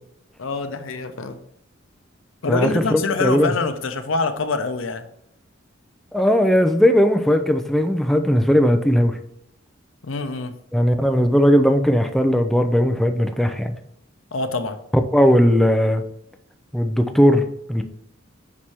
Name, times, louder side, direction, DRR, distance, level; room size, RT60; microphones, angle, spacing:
voice 1, 0.4-1.4 2.4-5.1 10.0-10.5 14.3-14.8, left 3 dB, 80° left, 8 dB, 0.7 m, -25 dB
voice 2, 2.5-3.5 6.1-9.2 10.7-13.7 15.1-16.0 16.7-17.8, equal, ahead, 5 dB, 0.5 m, -18 dB
5.8 x 4.8 x 4.3 m, 0.74 s
head